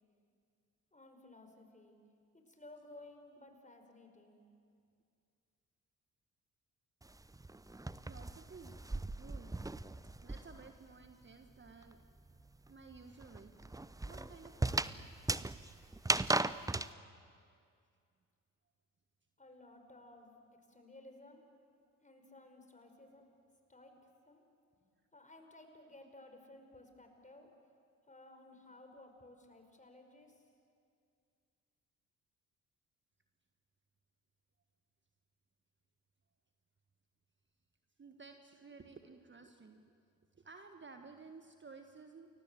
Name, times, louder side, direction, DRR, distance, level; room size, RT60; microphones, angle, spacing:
voice 1, 0.9-2.0 2.3-4.4 19.4-21.4 22.0-23.2 23.7-23.9 24.3-24.4 25.1-27.5 28.1-30.5, left 2 dB, 15° left, 5 dB, 5.4 m, -57 dB
sound 1, 7.0-10.8 11.0-16.9, right 2 dB, 10° right, 0.8 m, -37 dB
voice 2, 8.0-8.8 9.2-9.6 10.2-12.0 12.7-13.5 14.0-15.1 38.0-40.0 40.3-42.3, right 4 dB, 25° right, 6 dB, 1.6 m, -55 dB
29.5 x 22.0 x 7.8 m, 2.3 s
figure-of-eight pair, 45°, 43 cm